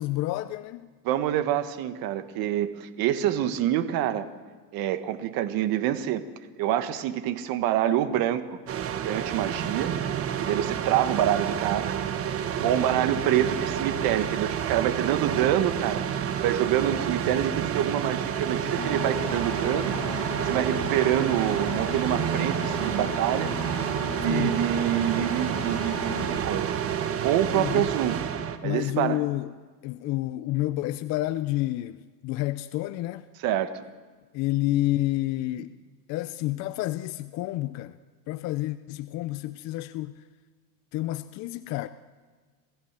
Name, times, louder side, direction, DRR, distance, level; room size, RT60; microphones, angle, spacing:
voice 1, 0.0-0.9 12.6-13.0 24.3-24.6 27.5-27.9 28.6-29.5 29.8-33.3 34.3-35.8 36.1-38.0 38.3-40.2 40.9-41.9, left 16 dB, 35° left, 0.6 m, -29 dB
voice 2, 1.0-4.3 4.7-6.2 6.6-8.6 9.0-10.0 10.4-16.0 16.4-19.9 20.2-23.5 24.2-28.2 28.6-29.2 33.4-33.8, right 11 dB, 45° right, 1.6 m, -26 dB
sound 1, 8.7-28.6, right 8 dB, 25° right, 1.3 m, -29 dB
Engine, 18.8-26.4, left 1 dB, 5° left, 6.9 m, -36 dB
27.5 x 15.5 x 7.5 m
supercardioid pair, 135°, 50 cm